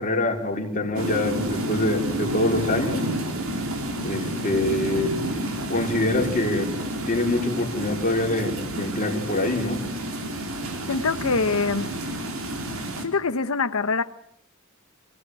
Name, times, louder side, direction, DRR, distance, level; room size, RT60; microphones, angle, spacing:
voice 1, 0.0-3.1 4.0-5.2 5.7-9.8, left 1 dB, 40° left, 1 dB, 4.4 m, -25 dB
sound 1, 1.0-13.1, right 1 dB, 85° right, 4.3 m, -30 dB
voice 2, 10.9-11.9 13.0-14.0, left 4 dB, 85° left, 10 dB, 0.9 m, -24 dB
27.0 x 17.0 x 9.4 m, 0.72 s
head